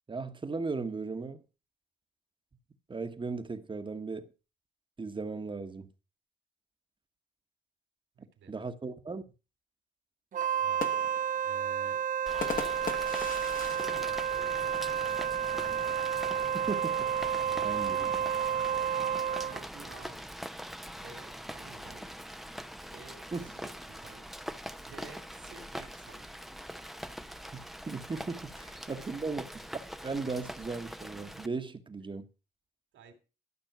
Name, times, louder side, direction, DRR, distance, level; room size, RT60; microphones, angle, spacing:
voice 1, 0.1-1.4 2.9-4.3 5.0-5.9 8.5-9.2 16.7-17.1 17.6-18.1 23.3-23.5 27.5-29.5 30.0-32.3, right 4 dB, 25° right, 1.3 m, -37 dB
voice 2, 8.2-8.5 10.6-11.0 11.4-12.0 12.4-12.9 13.7-16.1 18.9-20.2 20.9-22.2 22.9-23.7 24.0-24.3 24.9-26.2 28.6-29.0 32.9-33.1, right 5 dB, 70° right, 2.9 m, -52 dB
Wind instrument woodwind instrument, 10.3-19.6, right 9 dB, 40° right, 0.5 m, -31 dB
sound 1, 10.5-15.1 15.5-15.6 15.9-16.4 17.2-18.8, left 5 dB, 45° left, 1.5 m, -41 dB
Rain, 12.3-31.5, equal, ahead, 0.7 m, -43 dB
12.5 x 6.1 x 6.0 m
cardioid pair, 90°, 20 cm